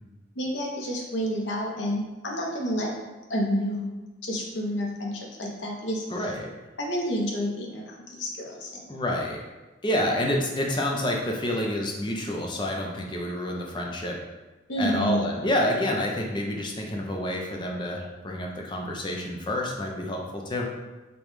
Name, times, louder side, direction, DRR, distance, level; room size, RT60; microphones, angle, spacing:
voice 1, 0.3-2.9 3.3-6.3 6.8-8.8 14.7-15.3, equal, 70° left, -2 dB, 0.8 m, -29 dB
voice 2, 6.1-6.5 8.9-9.4 9.8-14.2 14.8-20.7, left 1 dB, 25° left, 0 dB, 0.5 m, -28 dB
5.1 x 2.3 x 3.1 m, 1.1 s
head